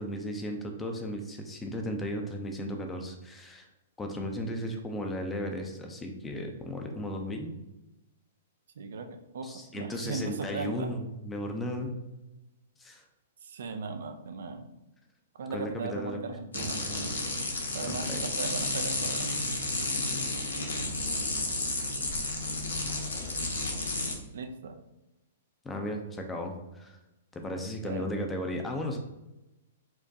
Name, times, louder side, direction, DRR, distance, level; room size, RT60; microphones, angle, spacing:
voice 1, 0.0-3.7 4.0-7.5 9.4-11.9 12.8-13.0 15.5-16.2 16.5-17.1 17.8-18.2 25.6-27.0 27.3-29.0, left 1 dB, 15° left, 3 dB, 0.5 m, -35 dB
voice 2, 8.8-10.9 13.4-14.6 15.4-16.8 17.7-19.3 24.3-24.8 27.8-28.1, right 4 dB, 70° right, 7 dB, 0.4 m, -37 dB
sound 1, 16.5-24.1, left 2 dB, 90° left, 0.7 m, -32 dB
4.4 x 2.2 x 2.7 m, 0.97 s
hypercardioid pair, 120°, 0 cm